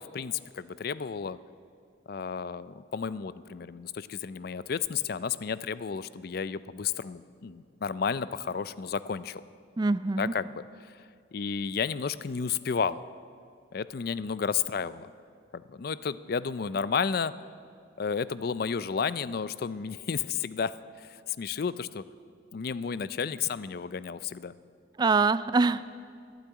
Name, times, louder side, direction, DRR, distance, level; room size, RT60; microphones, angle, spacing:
voice 1, 0.0-1.4 2.1-9.4 10.2-10.6 11.3-13.0 13.7-15.1 15.5-17.3 18.0-20.7 21.4-22.0 22.5-24.5, left 6 dB, 55° left, 16 dB, 0.4 m, -32 dB
voice 2, 9.8-10.3 25.0-25.9, right 3 dB, 25° right, 15 dB, 0.3 m, -24 dB
12.0 x 12.0 x 9.0 m, 2.3 s
head